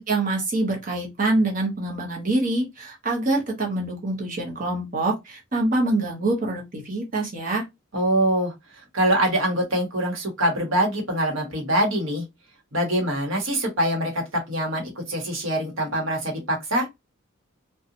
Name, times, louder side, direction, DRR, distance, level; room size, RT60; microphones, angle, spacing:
voice 1, 0.1-7.6, right 2 dB, 40° right, 0.8 m, -25 dB
voice 2, 7.9-8.5 8.9-12.2 12.7-16.9, right 1 dB, 75° right, 1.1 m, -24 dB
2.8 x 2.3 x 2.5 m
head